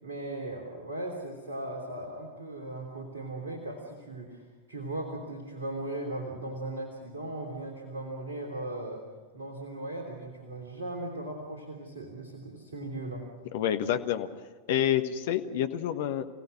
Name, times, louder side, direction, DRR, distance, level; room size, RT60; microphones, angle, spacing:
voice 1, 0.0-4.4 4.7-9.0 9.3-13.2, right 1 dB, 65° right, 0 dB, 3.4 m, -38 dB
voice 2, 13.5-14.3 14.7-16.2, left 10 dB, 55° left, 8 dB, 1.4 m, -28 dB
28.0 x 17.0 x 6.3 m, 1.4 s
figure-of-eight pair, 90°, 0 cm